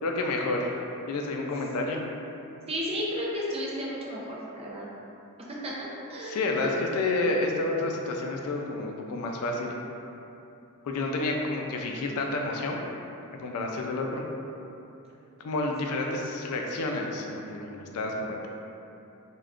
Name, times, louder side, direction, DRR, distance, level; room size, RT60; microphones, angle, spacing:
voice 1, 0.0-2.0 6.2-9.7 10.8-12.8 13.3-14.2 15.4-18.5, left 2 dB, 80° left, 1 dB, 0.4 m, -30 dB
voice 2, 2.7-4.9 5.5-6.7, equal, 25° right, -5 dB, 0.4 m, -33 dB
3.5 x 2.2 x 2.4 m, 2.9 s
head